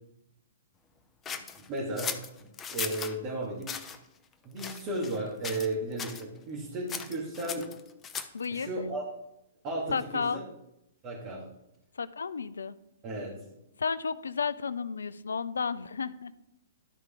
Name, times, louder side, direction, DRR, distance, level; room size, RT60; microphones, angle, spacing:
sound 1, 1.2-3.1 3.6-4.0 4.6-5.2 5.4-5.7 6.0-6.2 6.9-8.5, left 6 dB, 20° left, 0.7 m, -37 dB
voice 1, 1.7-3.7 4.4-7.7 8.5-9.0 9.6-10.4 11.0-11.4 13.0-13.4, right 1 dB, 35° right, -5 dB, 2.4 m, -34 dB
voice 2, 8.3-8.7 9.9-10.4 12.0-12.8 13.8-16.3, left 5 dB, 75° left, 17 dB, 0.4 m, -32 dB
12.0 x 4.7 x 3.8 m, 0.84 s
figure-of-eight pair, 120°, 0 cm